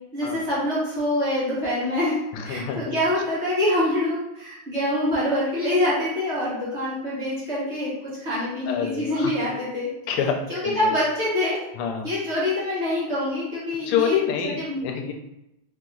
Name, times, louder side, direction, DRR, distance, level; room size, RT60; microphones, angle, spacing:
voice 1, 0.1-7.9 8.2-9.9 10.5-11.6 12.0-14.8, left 1 dB, 40° right, -9 dB, 1.2 m, -25 dB
voice 2, 2.3-2.9 8.7-9.3 10.1-10.9 11.8-12.1 13.9-15.1, left 7 dB, 90° left, 4 dB, 1.5 m, -27 dB
3.6 x 2.8 x 3.7 m, 0.86 s
omnidirectional pair, 2.3 m